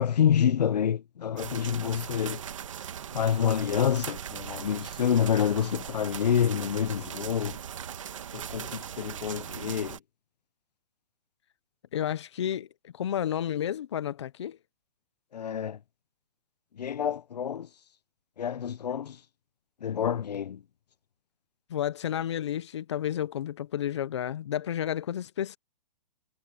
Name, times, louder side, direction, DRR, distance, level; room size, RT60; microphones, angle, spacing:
voice 1, 0.0-2.4 3.1-7.6 8.3-10.0 15.3-15.8 16.8-17.7 18.4-19.2 19.8-20.6, left 8 dB, 80° left, 0.9 m, -27 dB
sound 1, 1.4-10.0, right 9 dB, 50° right, 1.8 m, -39 dB
voice 2, 11.9-14.6 21.7-25.6, left 10 dB, 45° left, 0.7 m, -31 dB
hypercardioid pair, 180°, 20 cm